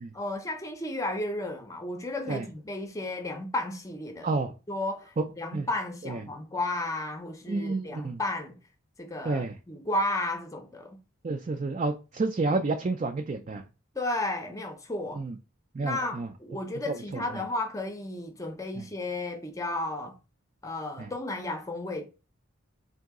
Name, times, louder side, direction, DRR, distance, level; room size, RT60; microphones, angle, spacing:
voice 1, 0.1-4.3 4.7-8.6 9.0-11.0 13.9-15.2 15.8-20.2 20.6-22.0, left 2 dB, 15° left, 0.6 m, -33 dB
voice 2, 4.2-4.5 5.2-5.3 5.5-5.7 6.0-6.2 7.5-8.2 9.2-9.6 11.2-13.6 15.1-15.4 15.7-16.3 16.9-17.2 18.8-18.9 21.0-21.1, right 3 dB, 35° right, 0.3 m, -30 dB
3.8 x 2.7 x 3.5 m
head